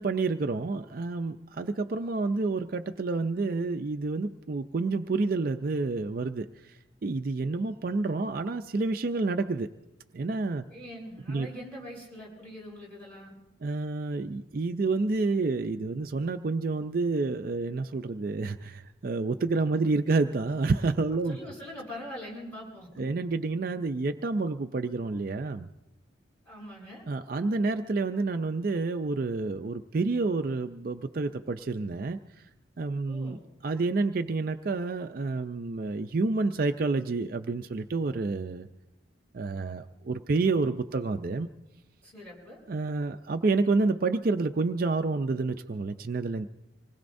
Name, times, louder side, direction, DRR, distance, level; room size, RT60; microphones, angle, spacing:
voice 1, 0.0-6.5 7.0-9.7 10.1-10.6 11.3-11.5 13.6-21.4 23.0-25.7 27.1-32.2 32.8-33.4 33.6-38.7 39.3-41.5 42.7-46.5, right 3 dB, 50° right, 7 dB, 0.4 m, -29 dB
voice 2, 10.7-13.3 19.8-19.9 21.2-23.0 26.4-27.0 33.1-33.4 42.0-42.6, equal, 5° left, -6 dB, 7.6 m, -43 dB
25.5 x 20.0 x 2.6 m, 0.96 s
head